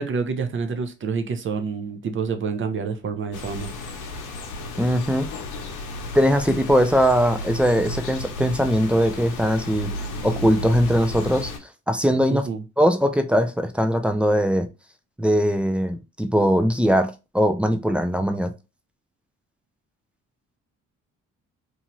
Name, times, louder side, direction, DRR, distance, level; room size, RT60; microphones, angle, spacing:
voice 1, 0.0-3.7 12.3-12.6, right 5 dB, 40° right, 0.6 m, -28 dB
sound 1, 3.3-11.6, left 2 dB, 90° left, 0.7 m, -33 dB
voice 2, 4.8-5.3 6.1-9.9 10.2-11.5 11.9-12.5 12.8-14.7 15.2-18.5, equal, 5° right, 0.4 m, -20 dB
2.8 x 2.3 x 3.0 m
cardioid pair, 90°, 30 cm